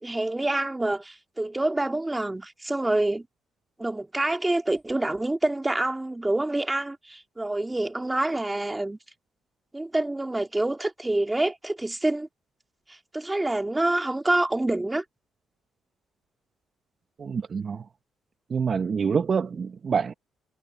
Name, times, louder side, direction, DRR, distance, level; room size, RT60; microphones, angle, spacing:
voice 1, 0.0-3.3 3.8-9.0 9.7-12.3 12.9-15.0, right 2 dB, 15° right, 2.4 m, -27 dB
voice 2, 17.2-17.9 18.5-20.1, right 6 dB, 45° right, 1.1 m, -26 dB
cardioid pair, 90°, 0 cm